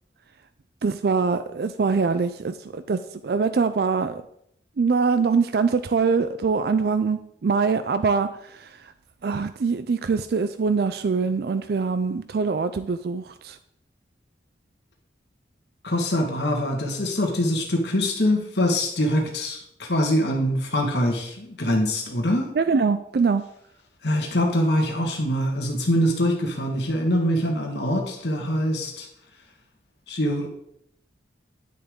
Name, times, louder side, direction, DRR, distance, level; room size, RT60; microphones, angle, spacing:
voice 1, 0.8-4.2 4.8-8.7 9.2-13.6 22.6-23.4, right 5 dB, 55° right, 11 dB, 0.4 m, -23 dB
voice 2, 15.8-22.5 24.0-29.1 30.1-30.5, equal, 65° left, 1 dB, 1.5 m, -24 dB
10.5 x 6.7 x 3.7 m, 0.73 s
head